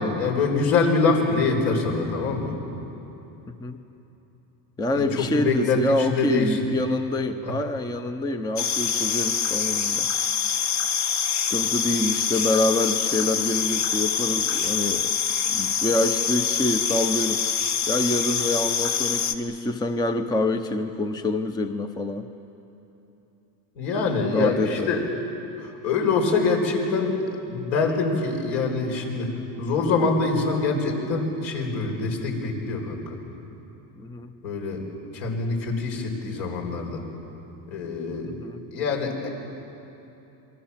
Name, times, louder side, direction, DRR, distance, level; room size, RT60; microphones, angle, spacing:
voice 1, 0.0-2.6 4.9-6.6 7.4-7.5 23.8-25.0 25.6-27.2 27.4-29.3 29.6-33.0 34.4-34.8 35.1-37.0 37.7-38.3 38.7-39.3, left 4 dB, 65° left, 2 dB, 5.7 m, -24 dB
voice 2, 3.5-3.8 4.8-10.1 11.2-15.1 15.5-17.4 17.9-22.3 24.3-25.0 34.0-34.3 38.2-38.6, left 2 dB, 10° left, 8 dB, 0.7 m, -26 dB
sound 1, 8.6-19.3, left 7 dB, 35° left, 1.2 m, -25 dB
27.5 x 22.5 x 7.4 m, 3.0 s
supercardioid pair, 130°, 49 cm